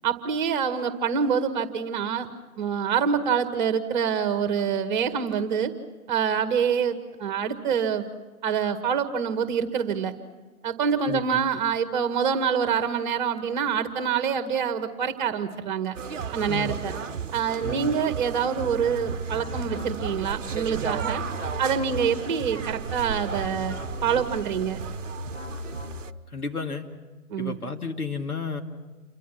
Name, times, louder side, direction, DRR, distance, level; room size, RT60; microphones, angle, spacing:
voice 1, 0.0-2.3 2.6-5.7 6.1-8.1 8.4-10.1 10.6-16.0 16.3-16.9 17.3-21.2 21.6-23.8 24.0-24.8 27.3-27.5, right 7 dB, 30° right, 10 dB, 1.8 m, -26 dB
voice 2, 11.1-11.4 16.5-16.8 17.6-18.0 26.3-26.9 27.4-28.6, left 4 dB, 80° left, 3 dB, 2.7 m, -32 dB
sound 1, 15.9-26.1, right 6 dB, 55° right, 1.0 m, -34 dB
sound 2, 18.3-26.4, left 2 dB, 55° left, 5.7 m, -39 dB
29.0 x 24.5 x 5.9 m, 1.3 s
figure-of-eight pair, 130°, 44 cm